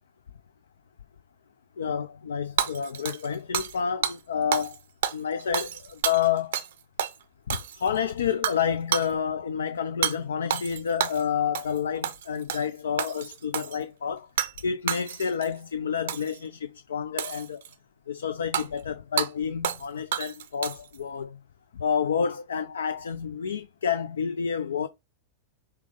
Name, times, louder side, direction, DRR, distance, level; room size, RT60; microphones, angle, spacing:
voice 1, 1.8-4.8 5.1-6.6 7.5-14.3 14.6-17.6 18.1-21.4 21.7-24.9, left 7 dB, 65° left, 0.3 m, -29 dB
Hammer / Shatter, 2.6-4.2 4.5-4.8 5.0-6.7 7.0-7.1 7.5-8.0 8.4-8.6 8.9-9.1 10.0-10.2 10.5-11.2 11.6-11.8 12.0-12.7 13.0-13.8 14.4-14.6 14.9-15.5 16.1-16.4 17.2-17.7 18.5-18.7 19.2-19.3 19.6-19.9 20.1-21.0, right 9 dB, 60° right, 0.5 m, -29 dB
5.8 x 2.1 x 3.7 m
figure-of-eight pair, 90°, 0 cm